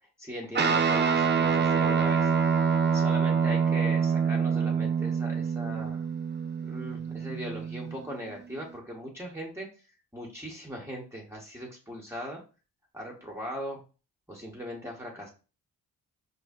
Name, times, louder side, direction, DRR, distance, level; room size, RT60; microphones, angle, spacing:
voice 1, 0.0-2.6 2.9-6.0 6.6-9.9 10.1-12.4 12.9-13.8 14.3-15.3, equal, 5° right, -2 dB, 1.0 m, -39 dB
Guitar, 0.6-8.2, right 6 dB, 30° right, 0.6 m, -26 dB
4.8 x 2.6 x 2.4 m, 0.34 s
cardioid pair, 65°, 38 cm